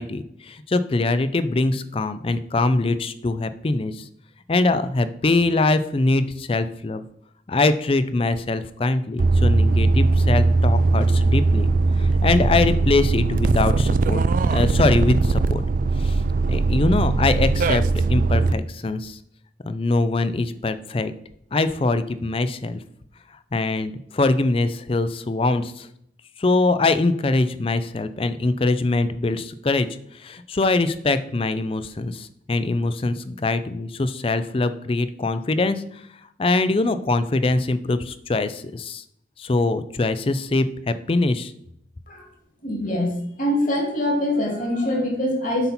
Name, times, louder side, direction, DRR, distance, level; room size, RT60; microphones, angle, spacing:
voice 1, 0.0-4.1 4.5-7.0 7.5-11.7 12.0-15.6 16.0-16.2 16.5-17.8 18.1-19.2 19.7-21.1 21.5-22.8 23.5-25.9 26.4-29.9 30.1-36.0 36.4-39.0 39.4-41.5, left 2 dB, 30° left, 12 dB, 0.4 m, -23 dB
sound 1, 9.2-18.5, right 3 dB, 45° right, 0.3 m, -19 dB
voice 2, 42.6-43.1 43.4-45.7, left 1 dB, 45° left, 1 dB, 2.3 m, -23 dB
8.0 x 5.5 x 4.3 m, 0.72 s
head